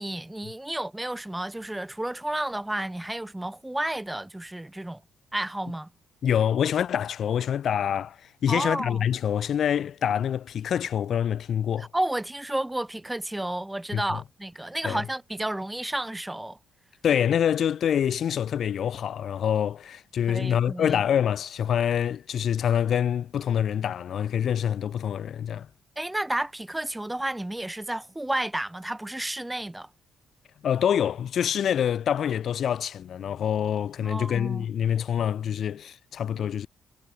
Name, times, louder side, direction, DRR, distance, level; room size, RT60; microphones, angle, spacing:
voice 1, 0.0-5.0 5.3-5.9 8.5-9.0 11.8-16.6 20.3-21.0 26.0-29.9 34.0-34.7, right 1 dB, 10° right, 2.0 m, -31 dB
voice 2, 6.2-11.9 13.9-14.2 14.8-15.0 17.0-25.7 30.6-36.7, left 9 dB, 60° left, 1.3 m, -26 dB
cardioid pair, 90°, 0 cm